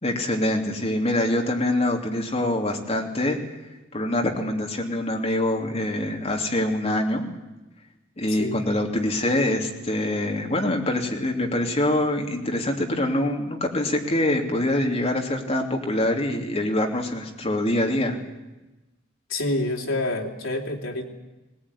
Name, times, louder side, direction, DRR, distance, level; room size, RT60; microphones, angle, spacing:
voice 1, 0.0-3.4 3.9-7.2 8.2-18.2, left 1 dB, 30° left, 2 dB, 3.0 m, -24 dB
voice 2, 8.3-8.6 19.3-21.2, left 2 dB, 80° left, 1 dB, 3.4 m, -28 dB
20.5 x 18.5 x 9.9 m, 1.1 s
head